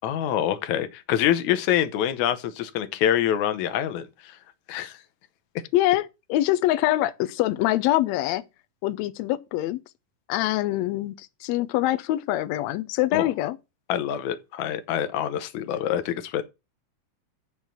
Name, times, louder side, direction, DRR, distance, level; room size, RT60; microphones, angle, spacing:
voice 1, 0.0-4.1 4.7-5.0 13.1-13.3 13.9-16.4, left 10 dB, 70° left, 2.0 m, -25 dB
voice 2, 5.7-8.4 8.8-9.8 10.3-13.6, left 15 dB, 90° left, 1.5 m, -24 dB
7.2 x 6.2 x 5.6 m
omnidirectional pair, 3.8 m